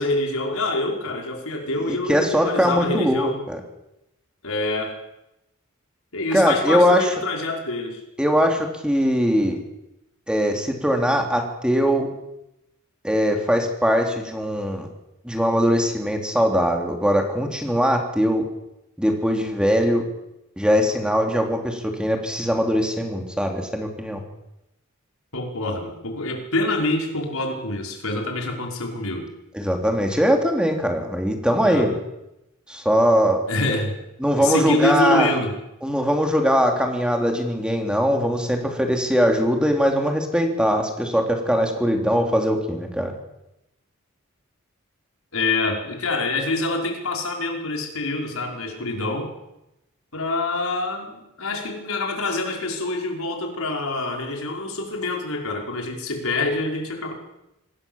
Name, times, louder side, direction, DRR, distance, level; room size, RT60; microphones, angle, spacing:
voice 1, 0.0-3.4 4.4-5.0 6.1-8.0 25.3-29.3 31.6-31.9 33.5-33.9 34.4-35.5 45.3-49.3 50.1-57.1, left 2 dB, 90° left, 1 dB, 5.5 m, -26 dB
voice 2, 2.1-3.6 6.3-7.1 8.2-9.6 10.3-12.1 13.0-14.9 15.2-18.4 19.0-20.0 20.6-24.2 29.5-31.9 32.7-33.4 34.2-35.4 35.8-43.1, equal, 5° right, 3 dB, 3.7 m, -21 dB
27.0 x 19.5 x 7.5 m, 0.91 s
head